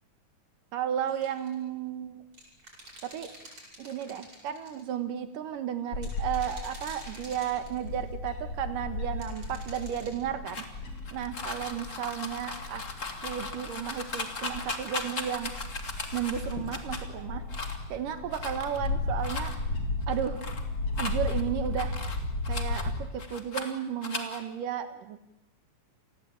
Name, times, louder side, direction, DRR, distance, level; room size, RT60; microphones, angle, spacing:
voice 1, 0.7-2.2 3.0-3.3 3.8-10.8 11.1-12.8 13.2-15.5 16.1-17.6 17.9-19.5 20.1-20.4 21.0-22.0 22.5-25.2, right 9 dB, 85° right, 9 dB, 3.1 m, -33 dB
sound 1, 1.1-1.5 2.3-4.8 6.0-8.0 9.2-10.1, right 1 dB, 40° right, 8.9 m, -48 dB
Bird / Wind, 5.9-22.9, left 2 dB, 50° left, 4.7 m, -35 dB
sound 2, 10.5-17.0 17.5-17.9 18.3-18.9 19.2-19.5 20.0-20.6 20.9-22.8 23.2-23.7 24.0-24.4, left 3 dB, 25° left, 2.3 m, -38 dB
28.5 x 20.0 x 8.8 m, 0.88 s
omnidirectional pair, 3.7 m